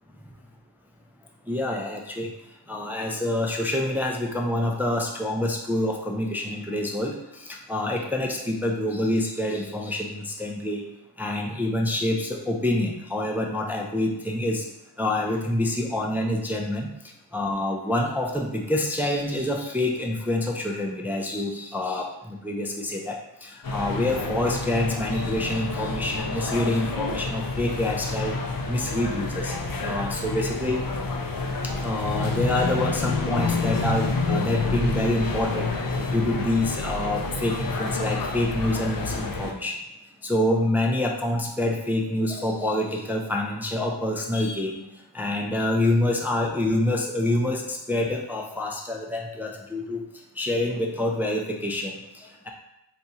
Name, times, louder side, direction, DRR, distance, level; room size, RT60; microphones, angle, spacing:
voice 1, 1.5-2.3 2.7-10.8 11.2-14.6 15.0-16.9 17.3-28.4 28.7-30.8 31.8-39.8 40.2-44.8 45.1-50.0 50.4-52.5, left 1 dB, 5° right, 0 dB, 0.3 m, -27 dB
sound 1, 23.6-39.5, left 3 dB, 50° left, 0.5 m, -29 dB
2.8 x 2.3 x 4.1 m, 0.88 s
wide cardioid pair, 50°, 45 cm